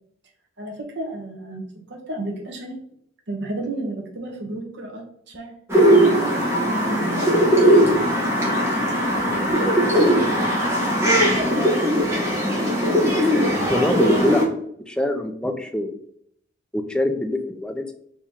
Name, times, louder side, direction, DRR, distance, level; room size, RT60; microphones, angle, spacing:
voice 1, 0.6-2.8 3.3-7.4, right 2 dB, 65° right, 1 dB, 1.0 m, -32 dB
sound 1, 5.7-14.4, equal, 15° right, 1.2 m, -19 dB
voice 2, 13.7-14.4 14.9-16.0 16.7-17.9, left 1 dB, 5° left, 6 dB, 0.4 m, -24 dB
4.4 x 3.0 x 3.5 m, 0.71 s
head